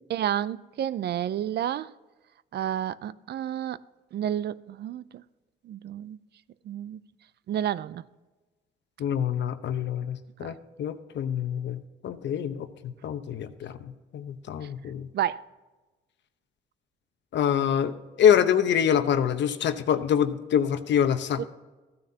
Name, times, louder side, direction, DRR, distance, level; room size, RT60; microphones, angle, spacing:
voice 1, 0.1-1.9 2.5-3.8 4.1-5.2 5.6-6.2 6.6-7.0 7.5-8.0 10.4-10.5 14.6-14.7 15.1-15.4 21.4-21.5, right 10 dB, 55° right, 0.4 m, -30 dB
voice 2, 9.0-15.1 17.3-21.4, left 9 dB, 65° left, 0.8 m, -26 dB
14.5 x 9.6 x 2.8 m
cardioid pair, 90°, 20 cm